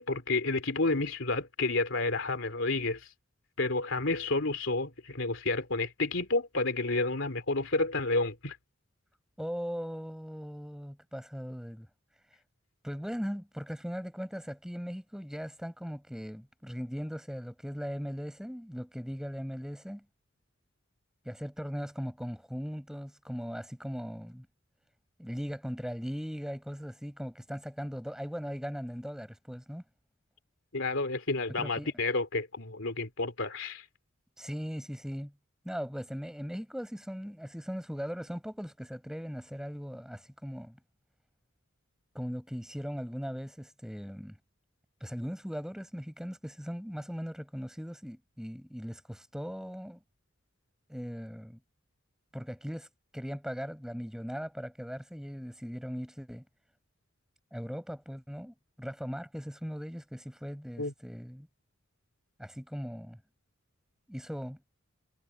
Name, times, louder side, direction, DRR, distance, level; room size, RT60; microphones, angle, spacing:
voice 1, 0.0-3.0 3.6-8.6 30.7-33.8 60.8-60.9, left 3 dB, 70° left, 3.1 m, -30 dB
voice 2, 9.4-11.9 12.3-12.4 12.8-20.0 21.3-24.5 25.2-29.8 31.5-31.9 34.4-35.3 35.6-40.8 42.1-44.4 45.0-50.0 50.9-51.6 52.3-52.9 53.1-56.4 57.5-61.5 62.4-63.2 64.1-64.6, equal, 5° right, 5.5 m, -39 dB
head